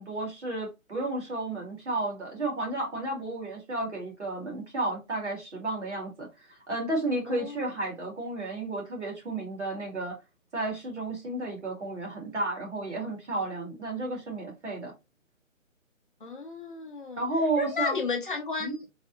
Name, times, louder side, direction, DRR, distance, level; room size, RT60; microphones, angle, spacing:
voice 1, 0.0-6.3 6.7-10.2 10.5-14.9 17.2-18.0 18.6-18.7, right 2 dB, 55° right, 2.2 m, -32 dB
voice 2, 7.3-7.6 16.2-17.3 17.6-18.8, left 4 dB, 40° left, 0.8 m, -33 dB
4.1 x 2.7 x 2.6 m
figure-of-eight pair, 155°, 41 cm